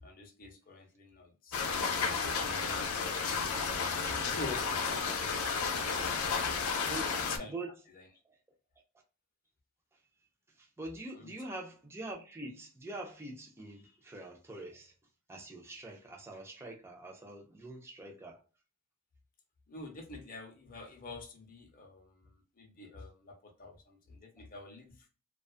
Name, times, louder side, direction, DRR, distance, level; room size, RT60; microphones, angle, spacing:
voice 1, 0.0-1.6 1.9-3.5 4.2-5.0 6.3-6.7 7.0-7.5 7.9-8.1 11.1-11.3 19.7-25.1, left 3 dB, 40° left, 0.7 m, -48 dB
sound 1, 1.5-7.4, left 5 dB, 90° left, 0.5 m, -32 dB
voice 2, 6.9-7.2 7.5-7.7 10.8-14.9 15.3-18.4, right 2 dB, 10° right, 0.5 m, -44 dB
2.4 x 2.3 x 2.4 m
head